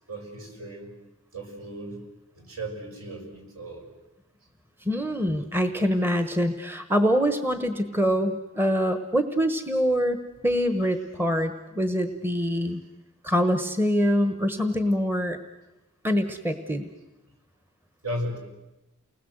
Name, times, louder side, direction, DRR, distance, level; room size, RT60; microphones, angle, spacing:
voice 1, 0.1-0.9 1.3-2.0 2.4-3.9 12.5-12.6 18.0-18.4, right 1 dB, 70° right, 2 dB, 6.3 m, -35 dB
voice 2, 4.9-10.2 10.4-12.8 13.2-15.4 16.0-16.9, equal, 10° right, 8 dB, 1.1 m, -24 dB
29.5 x 20.5 x 7.9 m, 1.0 s
head